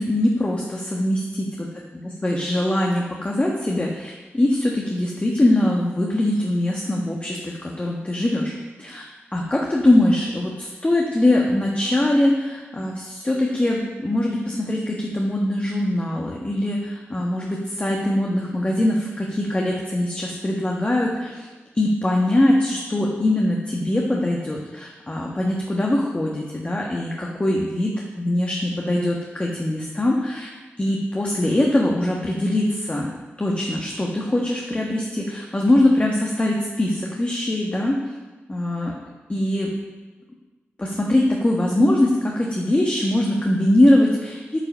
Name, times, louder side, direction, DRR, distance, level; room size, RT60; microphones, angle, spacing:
voice 1, 0.0-1.2 2.2-8.5 8.8-9.0 9.3-21.5 21.7-30.5 30.8-33.1 33.4-38.2 38.5-38.9 39.3-39.7 40.8-44.6, left 1 dB, 30° left, -2 dB, 1.4 m, -22 dB
8.9 x 5.4 x 5.6 m, 1.2 s
cardioid pair, 50°, 4 cm